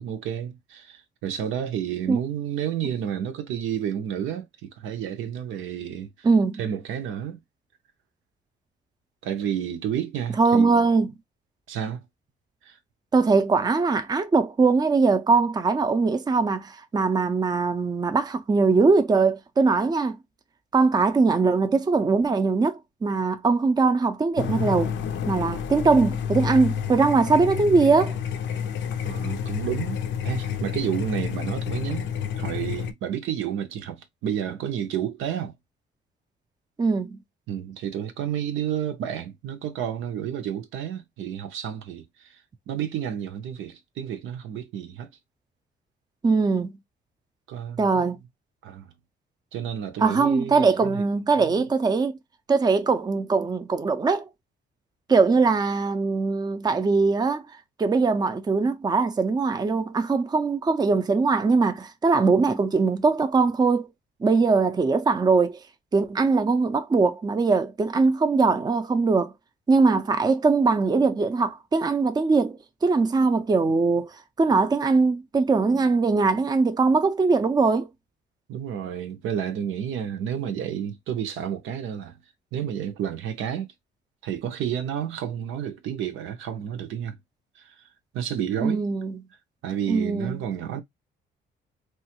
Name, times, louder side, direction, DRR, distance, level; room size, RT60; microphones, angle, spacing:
voice 1, 0.0-6.3 6.6-7.4 9.2-10.9 11.7-12.0 12.7-12.8 29.0-32.1 32.4-35.5 37.5-42.4 42.7-45.1 47.5-48.1 48.6-48.9 49.5-51.0 51.4-51.6 78.5-82.1 82.5-83.7 84.2-87.2 87.6-87.8 88.1-88.8 89.6-90.8, right 9 dB, 80° right, 0.7 m, -31 dB
voice 2, 6.2-6.6 10.4-11.1 13.1-20.2 20.7-24.9 25.3-28.2 36.8-37.2 46.2-46.8 47.8-48.2 50.0-52.1 52.5-54.3 55.1-57.5 57.8-63.9 64.2-65.6 65.9-69.3 69.7-74.1 74.4-77.9 88.6-89.2 89.9-90.4, right 4 dB, 20° right, 0.5 m, -21 dB
sound 1, 24.4-32.9, left 8 dB, 70° left, 0.5 m, -29 dB
3.0 x 2.3 x 2.8 m
cardioid pair, 90°, 20 cm